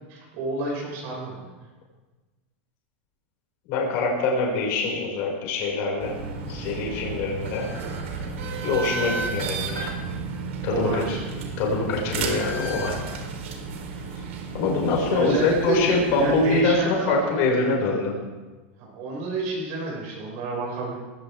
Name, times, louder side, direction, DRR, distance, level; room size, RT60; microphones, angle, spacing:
voice 1, 0.1-1.5 10.7-11.2 13.8-14.0 15.1-17.5 18.8-20.9, right 3 dB, 45° right, -3 dB, 5.8 m, -30 dB
voice 2, 3.7-6.1 6.5-7.7 8.6-9.9 10.6-11.2 11.6-12.9 14.5-18.1, left 3 dB, 45° left, -2 dB, 5.8 m, -24 dB
sound 1, 6.0-16.6, right 4 dB, 80° right, 3.7 m, -33 dB
20.0 x 17.0 x 3.6 m, 1.2 s
supercardioid pair, 170°, 7 cm